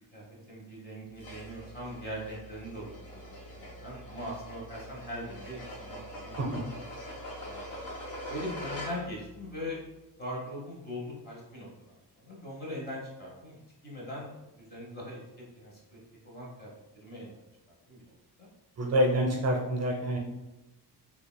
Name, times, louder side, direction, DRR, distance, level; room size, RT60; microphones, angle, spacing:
voice 1, 0.1-6.7 7.5-8.0 8.3-9.8 10.2-13.6 13.8-16.0 16.2-17.4 17.9-18.5, equal, 25° left, -3 dB, 1.0 m, -41 dB
sound 1, 1.2-9.3, equal, 60° left, 1.2 m, -43 dB
voice 2, 6.4-6.7 18.8-20.2, equal, 40° right, 0 dB, 0.6 m, -27 dB
6.2 x 2.3 x 2.2 m, 1.0 s
wide cardioid pair, 180°, 40 cm